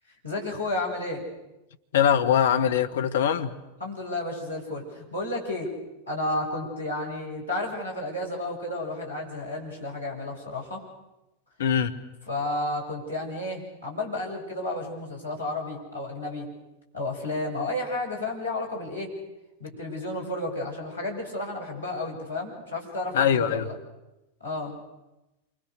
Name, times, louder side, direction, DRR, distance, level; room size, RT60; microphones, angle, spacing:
voice 1, 0.2-1.3 3.8-5.7 6.1-10.8 12.3-16.5 16.9-19.1 19.6-23.7 24.4-24.7, left 2 dB, 85° left, 7.7 m, -32 dB
voice 2, 1.9-3.5 11.6-12.0 23.1-23.7, left 8 dB, 60° left, 1.7 m, -22 dB
29.0 x 25.5 x 6.7 m
figure-of-eight pair, 90°, 0 cm